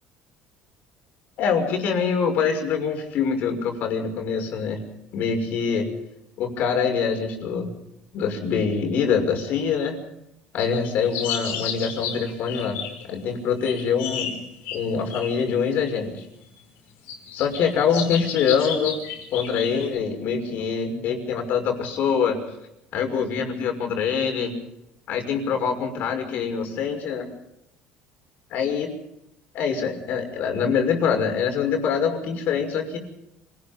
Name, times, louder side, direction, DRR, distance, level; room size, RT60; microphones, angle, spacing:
voice 1, 1.4-4.8 5.1-5.9 6.4-7.7 8.1-10.0 10.5-12.8 13.1-14.3 14.7-16.2 17.3-19.0 19.3-22.4 22.9-24.5 25.1-27.3 28.5-28.9 29.5-33.0, left 6 dB, 60° left, 4 dB, 6.0 m, -24 dB
sound 1, 10.6-13.2 13.6-15.4 16.4-16.5 17.1-20.0, left 8 dB, 80° left, 5.6 m, -32 dB
26.0 x 19.5 x 5.4 m, 0.83 s
cardioid pair, 125°, 3 cm